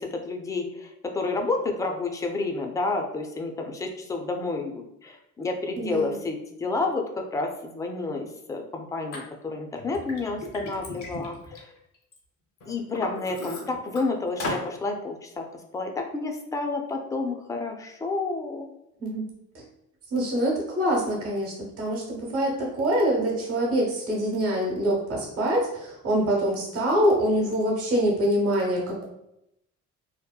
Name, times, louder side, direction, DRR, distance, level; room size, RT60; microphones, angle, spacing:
voice 1, 0.0-11.7 12.7-18.7, left 3 dB, 10° left, 3 dB, 0.3 m, -30 dB
voice 2, 5.8-6.2 19.0-19.2 19.5-19.6 20.1-29.0, equal, 50° right, -2 dB, 0.9 m, -25 dB
Liquid, 9.1-9.2 9.8-12.2 12.6-14.0 14.4-14.7, left 2 dB, 75° left, 0.7 m, -35 dB
2.7 x 2.1 x 2.2 m, 0.83 s
cardioid pair, 90°, 30 cm